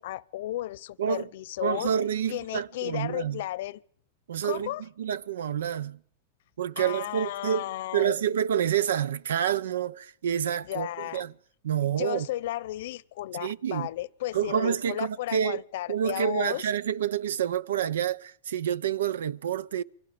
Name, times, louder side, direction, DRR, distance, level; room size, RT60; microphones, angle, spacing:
voice 1, 0.0-2.0 2.3-3.8 4.4-4.8 6.8-8.1 10.7-11.2 11.8-16.7, left 15 dB, 70° left, 0.9 m, -34 dB
voice 2, 1.6-3.4 4.3-4.7 5.0-6.0 6.6-7.6 7.9-10.9 11.1-11.3 11.6-12.3 13.4-13.9 14.3-15.6 15.9-19.8, right 9 dB, 90° right, 0.9 m, -28 dB
29.0 x 24.5 x 5.2 m
supercardioid pair, 135°, 0 cm